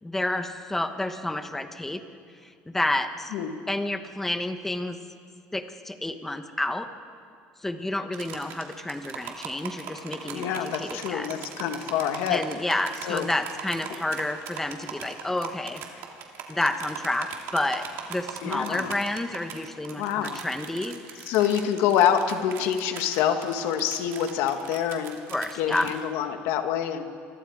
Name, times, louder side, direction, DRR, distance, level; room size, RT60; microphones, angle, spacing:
voice 1, 0.0-2.0 2.7-3.3 3.7-5.0 5.5-6.9 7.6-11.3 12.3-15.8 16.5-21.0 25.3-25.9, left 1 dB, 5° left, 8 dB, 1.2 m, -30 dB
sound 1, 8.1-26.0, right 8 dB, 70° right, 3.1 m, -40 dB
voice 2, 10.3-12.4 13.0-13.3 18.4-19.0 19.9-20.4 21.3-25.2 25.5-27.0, left 9 dB, 75° left, 6 dB, 1.8 m, -26 dB
28.0 x 24.5 x 4.9 m, 2.2 s
cardioid pair, 150°, 4 cm